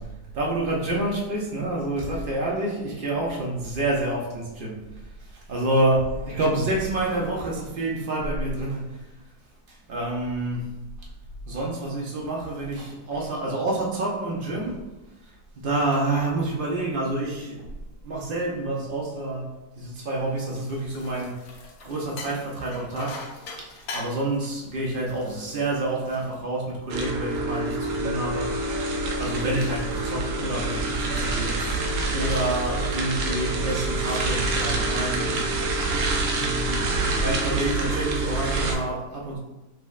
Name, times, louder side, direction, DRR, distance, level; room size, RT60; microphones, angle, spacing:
voice 1, 0.3-9.3 9.7-10.7 11.0-11.1 11.5-14.8 15.2-21.5 21.8-35.7 36.0-39.4, right 2 dB, 85° right, -3 dB, 0.4 m, -28 dB
sound 1, 20.2-27.0 27.5-30.5 31.0-31.3 31.6-32.1 32.4-32.7 33.8-34.4, left 3 dB, 65° left, 0.9 m, -44 dB
sound 2, 26.9-38.8, right 2 dB, 70° right, 0.9 m, -26 dB
5.8 x 2.1 x 2.4 m, 1.0 s
omnidirectional pair, 1.7 m